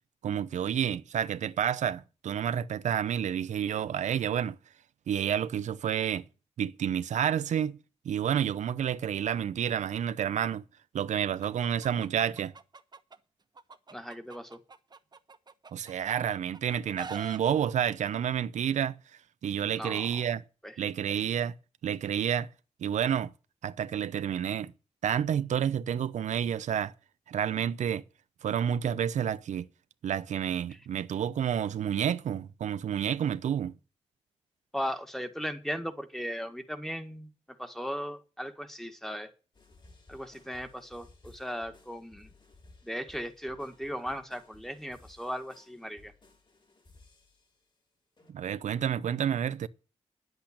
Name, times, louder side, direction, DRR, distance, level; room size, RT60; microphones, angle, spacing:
voice 1, 0.2-4.6 5.1-6.2 6.6-7.8 8.0-10.6 10.9-12.5 15.7-19.0 19.4-20.4 20.8-21.5 21.8-22.5 22.8-23.3 23.6-24.7 25.0-26.9 27.3-28.0 28.4-29.7 30.0-33.7 48.3-49.7, right 9 dB, 85° right, 0.7 m, -29 dB
Chicken rooster, 11.4-13.2 13.6-16.1 16.5-17.4, right 4 dB, 35° right, 1.1 m, -44 dB
voice 2, 13.9-14.6 19.7-20.2 20.6-20.7 34.7-37.3 37.6-39.3 40.1-42.3 42.8-46.1, equal, 5° left, 1.8 m, -37 dB
sound 1, 39.5-47.7 48.2-48.3, left 3 dB, 40° left, 5.4 m, -58 dB
10.5 x 8.1 x 8.6 m
cardioid pair, 90°, 12 cm